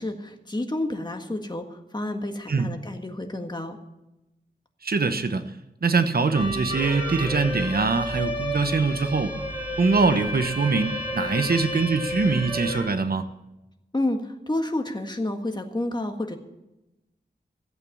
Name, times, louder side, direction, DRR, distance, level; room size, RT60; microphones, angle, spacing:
voice 1, 0.0-3.8 13.9-16.4, left 1 dB, 25° left, 4 dB, 1.7 m, -30 dB
voice 2, 4.8-5.5 5.8-9.3 9.8-13.3, right 4 dB, 60° right, 9 dB, 1.0 m, -23 dB
sound 1, 6.3-12.8, equal, 30° right, 7.1 m, -31 dB
15.5 x 8.5 x 7.2 m, 0.94 s
wide cardioid pair, 100°, 18 cm